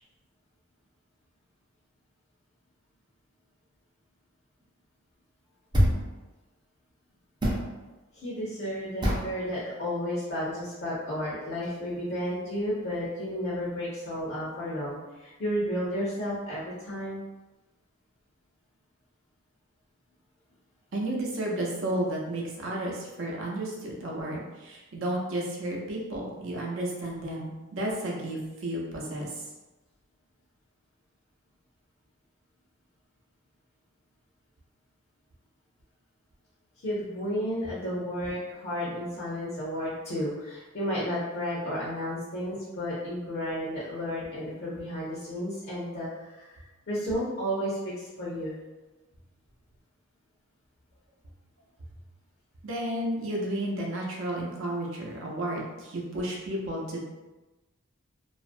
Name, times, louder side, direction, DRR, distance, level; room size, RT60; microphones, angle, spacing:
sound 1, 5.7-6.1 7.4-7.7 9.0-9.3, equal, 20° right, 0.5 m, -24 dB
voice 1, 8.1-17.2 36.8-48.6, equal, 50° left, -7 dB, 0.6 m, -32 dB
voice 2, 20.9-29.4 52.6-57.0, right 1 dB, 70° right, -2 dB, 0.6 m, -32 dB
2.4 x 2.0 x 2.5 m, 1.1 s
head